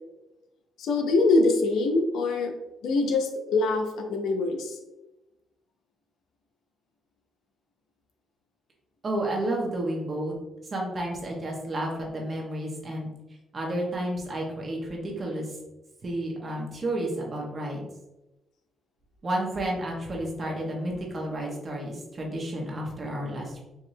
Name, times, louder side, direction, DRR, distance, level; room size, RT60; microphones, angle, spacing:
voice 1, 0.8-2.5 2.8-4.8, left 3 dB, 80° left, 4 dB, 0.6 m, -24 dB
voice 2, 9.0-10.3 10.7-13.1 13.5-15.6 16.0-17.9 19.2-23.6, right 1 dB, 40° right, -1 dB, 1.2 m, -31 dB
4.8 x 2.7 x 2.7 m, 1.0 s
cardioid pair, 90°, 0 cm